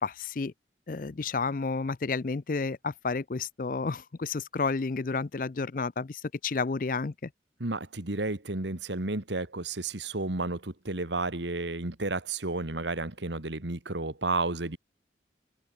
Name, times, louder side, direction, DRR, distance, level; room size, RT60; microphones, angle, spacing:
voice 1, 0.0-0.5 0.9-7.3, left 4 dB, 50° left, 0.5 m, -31 dB
voice 2, 7.6-14.8, right 2 dB, 80° right, 2.0 m, -32 dB
open air
head